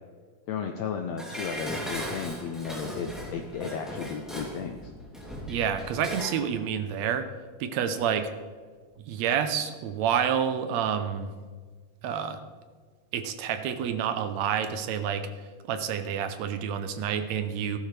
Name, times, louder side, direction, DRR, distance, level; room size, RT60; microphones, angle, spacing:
voice 1, 0.5-4.9, left 6 dB, 90° left, 5 dB, 1.4 m, -34 dB
Dishes pots and pans, 1.2-6.5 6.8-6.9, equal, ahead, 2.0 m, -37 dB
voice 2, 5.5-7.3 7.6-8.3 9.1-11.3 12.0-12.4 13.1-15.3 15.6-17.8, right 8 dB, 75° right, 9 dB, 1.7 m, -28 dB
15.0 x 12.5 x 3.3 m, 1.5 s
omnidirectional pair, 3.9 m